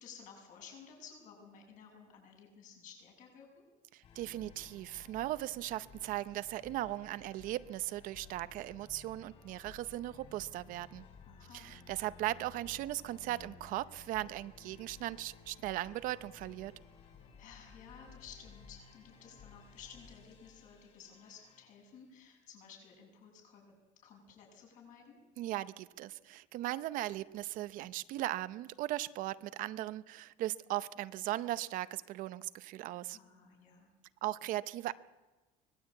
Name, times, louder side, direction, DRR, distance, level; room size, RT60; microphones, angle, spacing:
voice 1, 0.0-3.7 11.2-11.7 17.4-23.7 24.0-25.2 33.1-33.9, left 6 dB, 55° left, 1 dB, 7.1 m, -55 dB
voice 2, 3.9-11.0 11.5-16.7 25.4-33.2 34.2-34.9, right 15 dB, 60° right, 15 dB, 0.7 m, -38 dB
sound 1, 4.0-22.1, left 5 dB, 40° left, 6.0 m, -57 dB
24.5 x 19.5 x 8.4 m, 1.2 s
cardioid pair, 175°, 16 cm